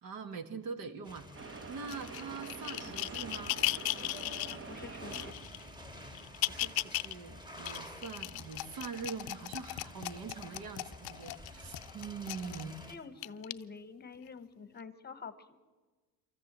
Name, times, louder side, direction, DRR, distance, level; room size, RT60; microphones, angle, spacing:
voice 1, 0.0-1.3 1.7-3.5 6.4-12.8, right 5 dB, 60° right, 9 dB, 1.6 m, -43 dB
sound 1, 1.0-13.0, left 1 dB, 10° right, 1.7 m, -50 dB
sound 2, 1.3-5.6, right 5 dB, 35° right, 1.0 m, -46 dB
sound 3, 1.9-4.6 5.1-5.6 6.1-7.1 7.6-12.7 13.2-13.5 14.3-14.4, left 19 dB, 70° left, 0.6 m, -37 dB
voice 2, 4.5-5.3 12.9-15.6, left 5 dB, 25° left, 12 dB, 1.0 m, -47 dB
26.5 x 14.5 x 7.4 m, 1.3 s
cardioid pair, 130°, 38 cm